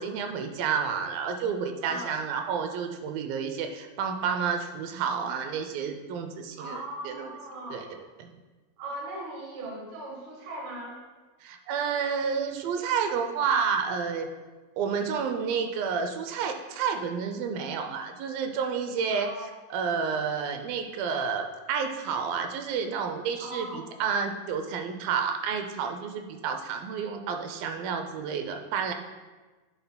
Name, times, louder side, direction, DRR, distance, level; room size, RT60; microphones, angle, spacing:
voice 1, 0.0-7.3 7.7-7.9 8.2-8.3 11.4-14.3 14.8-28.9, right 6 dB, 80° right, 5 dB, 2.2 m, -30 dB
voice 2, 1.8-2.1 6.6-7.9 8.8-11.0 19.1-19.5 23.4-23.8, right 1 dB, 60° right, -2 dB, 1.5 m, -39 dB
10.0 x 8.7 x 2.2 m, 1.3 s
omnidirectional pair, 4.5 m